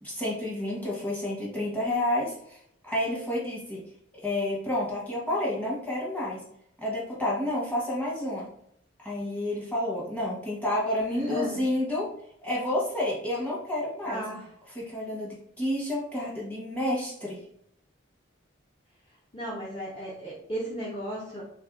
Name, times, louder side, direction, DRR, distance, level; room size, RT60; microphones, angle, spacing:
voice 1, 0.0-2.6 2.8-3.8 4.1-6.4 6.8-8.5 9.0-12.1 12.4-14.2 14.7-17.4, left 1 dB, 10° left, -6 dB, 1.0 m, -30 dB
voice 2, 11.0-11.6 14.0-14.5 19.3-21.4, right 1 dB, 25° left, -6 dB, 0.6 m, -34 dB
3.3 x 2.7 x 3.6 m, 0.71 s
head